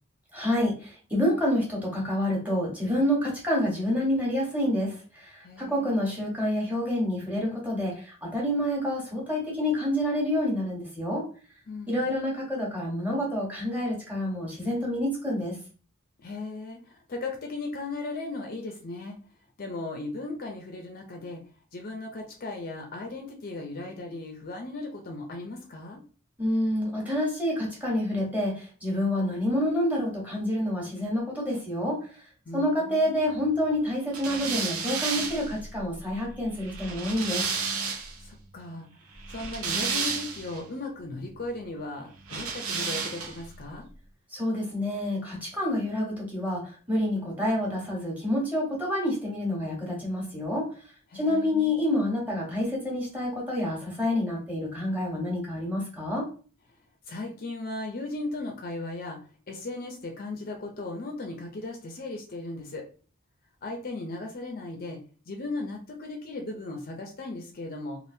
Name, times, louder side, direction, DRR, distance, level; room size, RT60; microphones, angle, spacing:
voice 1, 0.3-11.2 11.9-15.5 26.4-32.0 32.5-37.4 44.3-50.7 51.1-56.2, left 1 dB, 10° right, -4 dB, 1.2 m, -28 dB
voice 2, 5.4-5.9 11.7-12.0 16.2-19.2 19.6-21.4 21.7-26.0 32.5-33.1 38.2-38.9 39.3-43.9 51.1-51.8 57.1-59.2 59.5-62.8 63.6-65.0 65.3-68.0, left 2 dB, 45° left, 3 dB, 0.5 m, -37 dB
sound 1, 34.1-38.2 39.2-40.6 42.2-43.5, right 5 dB, 85° right, 0.7 m, -32 dB
3.3 x 2.5 x 2.7 m, 0.39 s
head